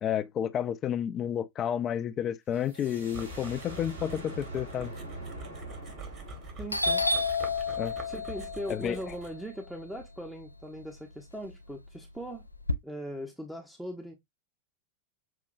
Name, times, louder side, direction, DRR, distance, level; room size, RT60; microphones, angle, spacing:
voice 1, 0.0-4.9 7.8-7.9 8.7-9.1, left 9 dB, 30° left, 0.5 m, -31 dB
sound 1, 2.5-8.1, right 2 dB, 80° right, 3.4 m, -45 dB
sound 2, 3.1-9.5, right 2 dB, 35° right, 1.6 m, -45 dB
Doorbell, 6.1-6.4 6.7-10.8 11.2-12.7, left 3 dB, 85° left, 0.4 m, -31 dB
voice 2, 6.6-7.0 8.1-12.5 12.8-14.2, equal, 5° right, 0.8 m, -40 dB
6.7 x 2.7 x 2.5 m
figure-of-eight pair, 90°, 0 cm